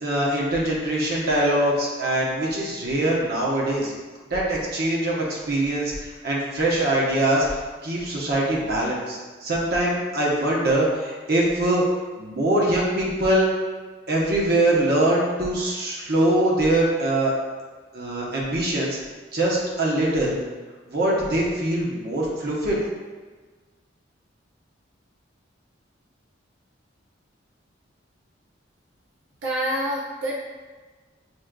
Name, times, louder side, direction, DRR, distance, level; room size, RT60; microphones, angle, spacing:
voice 1, 0.0-3.9 4.3-5.9 6.2-7.5 7.8-11.8 12.2-13.5 14.1-17.3 17.9-19.0 19.3-20.4 20.9-22.8, right 1 dB, 55° right, -4 dB, 0.9 m, -23 dB
voice 2, 29.4-30.4, equal, 85° right, -4 dB, 0.6 m, -26 dB
6.2 x 2.5 x 2.2 m, 1.4 s
head